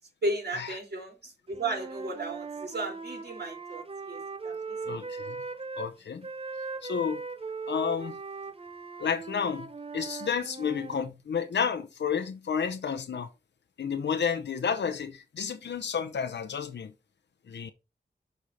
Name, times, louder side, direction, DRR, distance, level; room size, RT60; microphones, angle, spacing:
voice 1, 0.2-4.8, right 2 dB, 65° right, 3.4 m, -34 dB
Wind instrument woodwind instrument, 1.5-5.9 6.2-11.0, right 4 dB, 35° right, 0.7 m, -39 dB
voice 2, 4.9-5.4 5.8-6.3 6.8-7.2 7.7-8.1 9.0-9.7 9.9-13.3 13.8-16.9 17.5-17.7, left 6 dB, 90° left, 0.7 m, -31 dB
6.5 x 4.4 x 5.2 m
cardioid pair, 60°, 18 cm